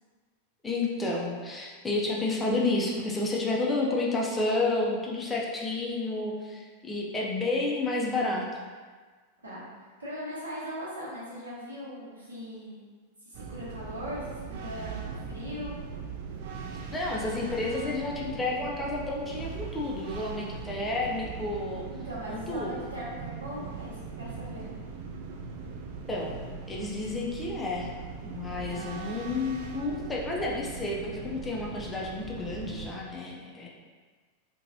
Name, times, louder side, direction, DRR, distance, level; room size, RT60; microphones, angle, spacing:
voice 1, 0.6-8.5 16.9-21.8 22.3-22.9 26.1-26.4 26.7-27.9 28.2-33.7, left 2 dB, 15° left, -3 dB, 0.4 m, -30 dB
voice 2, 10.0-12.9 13.3-15.7 21.9-24.7 28.5-28.9, equal, 75° right, -8 dB, 0.9 m, -39 dB
sound 1, 13.3-32.9, right 5 dB, 50° right, 0.3 m, -40 dB
2.9 x 2.2 x 2.6 m, 1.5 s
figure-of-eight pair, 90°, 0 cm